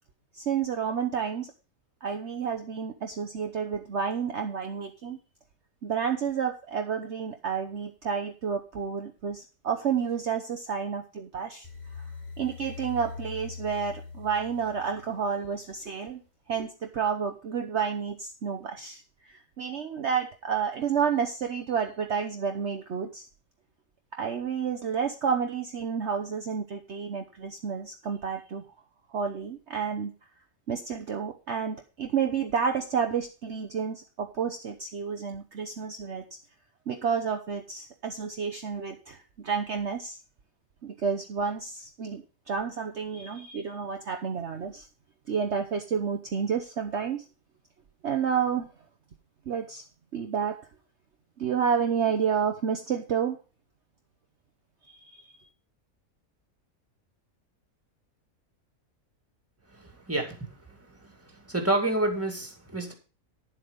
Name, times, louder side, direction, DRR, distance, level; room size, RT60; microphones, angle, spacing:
voice 1, 0.3-1.5 2.0-5.2 5.8-11.7 12.4-16.2 16.5-23.3 24.1-28.6 29.1-30.1 30.7-36.2 36.9-40.2 40.8-44.9 45.3-47.2 48.0-48.7 49.5-49.8 50.1-50.6 51.4-53.4 54.9-55.3, right 6 dB, 55° right, 5 dB, 1.2 m, -30 dB
sound 1, 11.6-15.7, left 5 dB, 30° left, 2.4 m, -42 dB
voice 2, 59.7-62.9, right 2 dB, 10° right, 3 dB, 2.3 m, -30 dB
11.0 x 7.7 x 5.2 m, 0.34 s
omnidirectional pair, 1.5 m